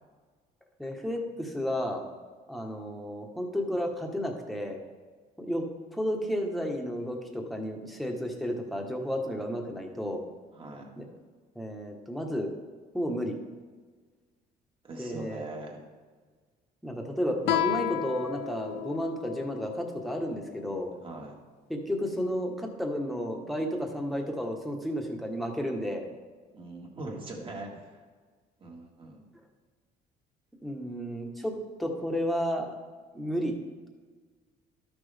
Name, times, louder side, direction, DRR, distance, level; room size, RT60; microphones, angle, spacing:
voice 1, 0.8-2.0 2.5-4.8 5.4-5.6 5.9-10.2 11.0-11.1 11.5-12.5 12.9-13.4 15.0-15.5 16.8-20.9 21.7-26.0 30.6-31.5 31.8-32.7 33.1-33.6, equal, ahead, 1 dB, 1.2 m, -32 dB
voice 2, 10.5-10.9 14.8-15.9 21.0-21.3 26.5-28.0 28.6-29.3, right 2 dB, 30° right, 0 dB, 1.8 m, -41 dB
Guitar, 17.4-20.7, left 14 dB, 85° left, 0.5 m, -33 dB
12.0 x 6.1 x 3.4 m, 1.5 s
cardioid pair, 110°, 17 cm